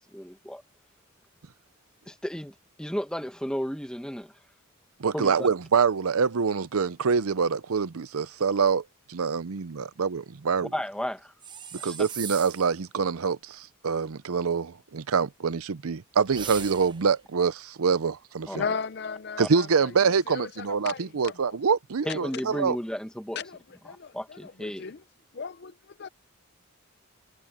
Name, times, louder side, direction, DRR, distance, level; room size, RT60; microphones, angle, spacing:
voice 1, 0.1-0.6 2.1-4.3 5.1-5.5 10.6-11.3 11.8-12.0 18.5-18.6 19.4-19.5 22.0-23.4 24.1-24.8, equal, 5° left, 1.3 m, -33 dB
voice 2, 5.0-8.8 9.1-10.7 11.8-18.5 19.4-22.8, right 5 dB, 90° right, 0.6 m, -25 dB
sound 1, 11.4-12.8 16.3-17.1, right 7 dB, 20° right, 0.9 m, -39 dB
voice 3, 18.5-21.6 22.0-22.7 23.3-23.6 23.8-25.0 25.3-26.1, left 5 dB, 50° left, 0.5 m, -36 dB
head